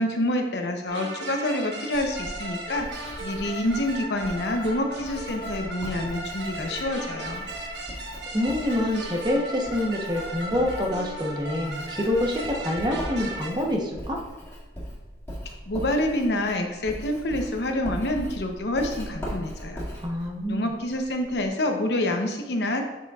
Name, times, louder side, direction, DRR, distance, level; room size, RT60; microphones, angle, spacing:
voice 1, 0.0-7.4 15.7-19.9 20.5-22.8, left 1 dB, 70° left, 4 dB, 0.8 m, -27 dB
sound 1, 0.9-13.5, right 1 dB, 80° right, 1.2 m, -36 dB
Writing, 1.9-21.5, equal, 15° left, 2.2 m, -40 dB
voice 2, 8.3-14.2 20.0-20.7, left 1 dB, 25° right, 0 dB, 0.9 m, -26 dB
7.3 x 6.7 x 2.4 m, 1.2 s
head